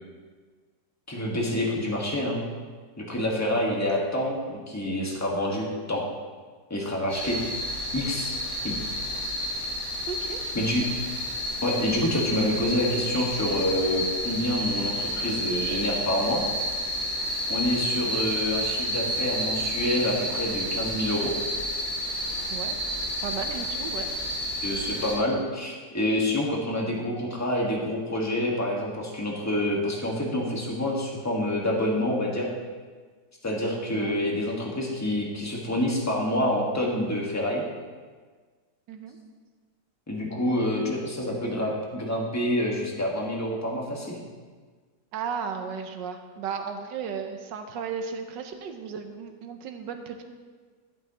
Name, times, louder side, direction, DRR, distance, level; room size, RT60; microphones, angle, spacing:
voice 1, 1.1-2.4 3.0-6.0 6.7-7.4 7.9-8.3 8.6-8.8 10.5-10.8 11.6-16.4 17.5-21.3 24.6-32.5 33.4-37.6 40.1-44.2, left 1 dB, 10° left, -2 dB, 1.4 m, -27 dB
sound 1, 7.1-25.1, equal, 40° left, 4.1 m, -30 dB
voice 2, 10.1-10.7 22.5-22.8 23.2-24.1 33.9-34.2 38.9-39.2 45.1-50.2, right 6 dB, 90° right, 6 dB, 1.5 m, -35 dB
12.5 x 11.0 x 3.0 m, 1.5 s
omnidirectional pair, 1.9 m